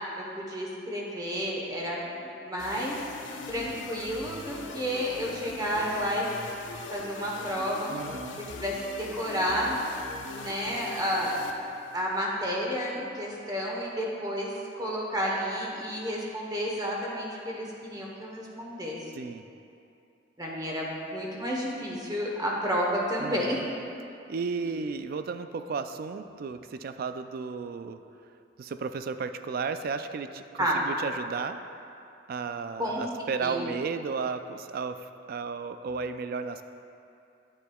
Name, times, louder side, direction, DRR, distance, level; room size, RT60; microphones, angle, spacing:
voice 1, 0.2-3.0 3.5-6.3 6.9-7.9 8.6-9.8 10.3-11.3 11.9-14.5 14.8-19.0 20.4-23.6 24.7-24.8 30.6-30.8 32.8-33.0 33.4-33.7, equal, 20° right, -3 dB, 1.0 m, -31 dB
sound 1, 2.6-12.3, left 4 dB, 70° left, 0.5 m, -42 dB
voice 2, 7.9-8.4 19.1-19.4 23.2-23.7 24.3-28.0 28.6-31.6 32.3-36.6, right 5 dB, 50° right, 9 dB, 0.3 m, -34 dB
9.8 x 9.1 x 2.3 m, 2.6 s
head